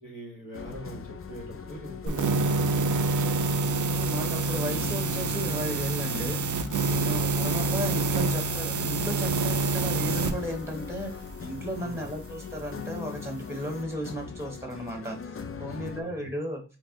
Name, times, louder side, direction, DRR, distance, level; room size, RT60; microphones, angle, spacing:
voice 1, 0.0-3.1 11.7-12.1 15.6-16.3, equal, 60° left, 0 dB, 1.4 m, -42 dB
sound 1, 0.5-16.0, left 5 dB, 35° left, 0.4 m, -40 dB
sound 2, 2.1-10.3, right 3 dB, 55° right, 0.4 m, -27 dB
voice 2, 3.9-16.6, equal, 5° right, 3 dB, 0.9 m, -35 dB
4.1 x 2.1 x 3.5 m, 0.32 s
wide cardioid pair, 85°, 37 cm